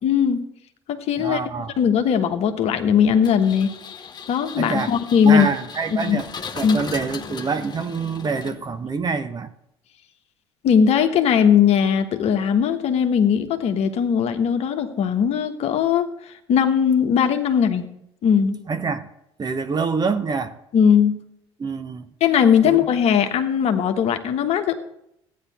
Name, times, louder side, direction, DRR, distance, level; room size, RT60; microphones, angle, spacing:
voice 1, 0.0-0.4 0.9-1.4 1.8-3.7 4.3-5.5 5.9-6.2 6.6-6.8 10.6-16.1 16.5-17.8 18.2-18.6 20.7-21.2 22.2-24.7, left 7 dB, 50° left, 1.3 m, -19 dB
voice 2, 1.2-1.7 4.5-4.9 5.2-6.3 6.5-9.5 18.7-19.1 19.4-20.5 21.6-22.1 22.6-22.8, right 5 dB, 30° right, 0.9 m, -26 dB
Engine, 3.2-8.9, left 6 dB, 30° left, 1.0 m, -37 dB
14.5 x 9.5 x 4.2 m
figure-of-eight pair, 55°, 14 cm